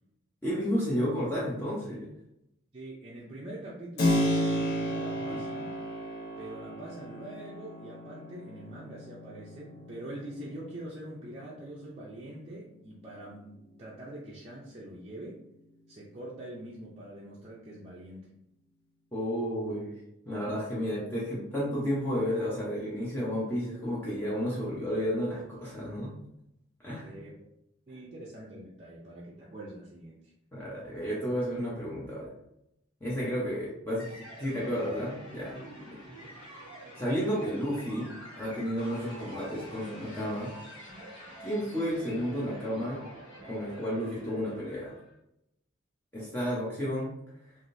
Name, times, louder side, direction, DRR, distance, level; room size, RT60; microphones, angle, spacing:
voice 1, 0.4-2.1 5.2-5.4 19.1-19.9 20.3-26.1 26.8-27.2 30.5-32.3 33.0-34.1 34.4-36.0 37.0-40.5 41.4-43.0 43.4-44.9 46.1-47.1, equal, 10° left, -7 dB, 0.7 m, -32 dB
voice 2, 2.7-5.7 6.4-15.5 15.9-18.4 27.0-27.5 27.9-30.3, right 1 dB, 30° right, -6 dB, 0.5 m, -44 dB
Keyboard (musical), 4.0-12.5, equal, 50° left, 0.7 m, -33 dB
sound 1, 34.0-45.1, right 1 dB, 65° left, 1.5 m, -47 dB
3.5 x 2.5 x 2.6 m, 0.82 s
head